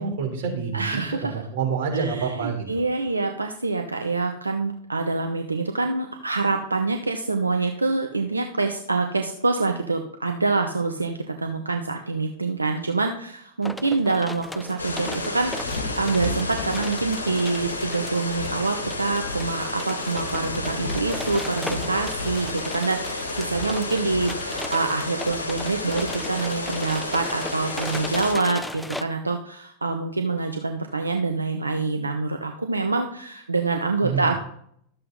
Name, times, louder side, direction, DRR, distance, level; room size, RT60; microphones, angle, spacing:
voice 1, 0.0-2.8 34.0-34.3, right 5 dB, 55° right, 0 dB, 3.6 m, -28 dB
voice 2, 0.7-1.4 1.9-34.4, right 3 dB, 90° right, 5 dB, 0.8 m, -26 dB
sound 1, 13.6-29.0, left 1 dB, 5° left, 0.6 m, -38 dB
sound 2, 14.8-28.3, left 2 dB, 85° left, 1.5 m, -31 dB
12.5 x 7.8 x 3.9 m, 0.67 s
figure-of-eight pair, 95°, 0 cm